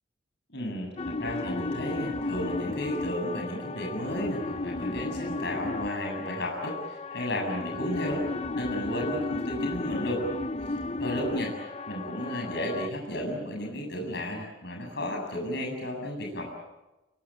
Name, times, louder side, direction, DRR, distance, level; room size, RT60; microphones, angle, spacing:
voice 1, 0.5-0.9 1.2-8.3 8.5-10.2 10.7-11.5 11.9-16.5, equal, 60° left, 1 dB, 7.6 m, -33 dB
sound 1, 1.0-12.9, left 3 dB, 35° left, 0.8 m, -34 dB
23.5 x 23.5 x 8.8 m, 1.0 s
head